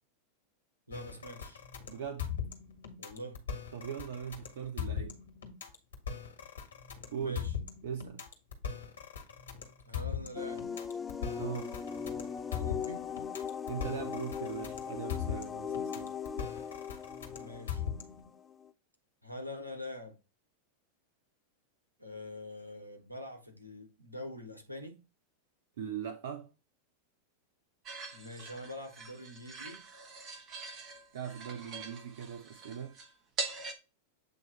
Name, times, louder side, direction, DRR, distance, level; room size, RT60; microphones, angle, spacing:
sound 1, 0.9-18.3, left 8 dB, 65° left, 1.9 m, -40 dB
voice 1, 0.9-1.6 3.0-3.4 7.2-7.5 9.9-10.7 12.5-13.0 17.4-17.8 19.2-20.2 22.0-25.0 28.1-29.8, left 1 dB, 85° right, 1.5 m, -44 dB
voice 2, 1.9-2.3 3.7-5.2 7.1-7.4 7.8-8.2 11.4-11.7 13.7-16.1 25.8-26.5 31.1-33.0, right 7 dB, 60° right, 0.7 m, -40 dB
sound 2, 10.4-18.7, left 7 dB, 15° left, 0.5 m, -39 dB
sound 3, 27.9-33.7, right 4 dB, 35° right, 1.5 m, -43 dB
8.1 x 3.0 x 4.4 m
figure-of-eight pair, 90°, 0 cm